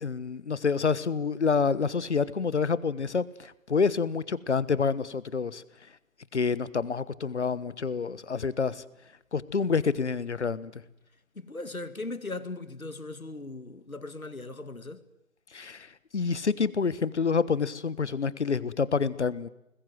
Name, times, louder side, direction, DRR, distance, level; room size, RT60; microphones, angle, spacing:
voice 1, 0.0-5.6 6.3-8.8 9.3-10.7 15.5-19.5, left 5 dB, 55° left, 1.3 m, -28 dB
voice 2, 11.3-15.0, left 2 dB, 80° left, 2.3 m, -38 dB
28.5 x 20.5 x 7.7 m
figure-of-eight pair, 145°, 41 cm